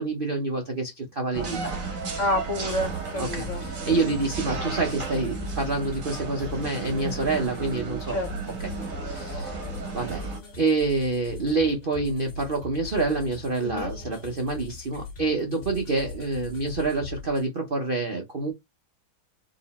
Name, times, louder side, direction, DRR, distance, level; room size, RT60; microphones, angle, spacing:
voice 1, 0.0-1.7 3.2-8.2 9.0-9.6 9.9-10.2 10.6-18.5, right 3 dB, 70° right, 0.5 m, -27 dB
sound 1, 1.3-10.4, right 4 dB, 55° right, 1.0 m, -34 dB
voice 2, 2.2-3.6 8.1-8.3 13.6-13.9, left 1 dB, 80° left, 0.6 m, -28 dB
sound 2, 2.7-17.5, left 4 dB, 45° left, 2.1 m, -40 dB
3.9 x 2.9 x 4.0 m
omnidirectional pair, 2.3 m